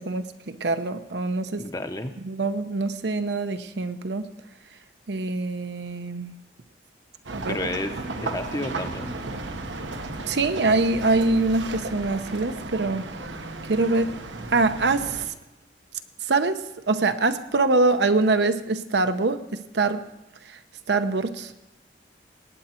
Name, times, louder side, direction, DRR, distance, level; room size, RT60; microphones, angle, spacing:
voice 1, 0.0-1.6 2.2-4.3 5.1-6.4 7.3-7.6 10.3-13.1 13.7-14.2 14.5-15.3 16.3-20.0 20.5-20.6 20.9-21.5, right 3 dB, 70° right, 9 dB, 0.8 m, -24 dB
voice 2, 1.6-2.1 7.5-9.2, left 1 dB, 20° left, 7 dB, 0.8 m, -31 dB
sound 1, 7.2-15.3, right 3 dB, 85° right, 1.2 m, -34 dB
19.0 x 9.0 x 4.4 m, 0.97 s
head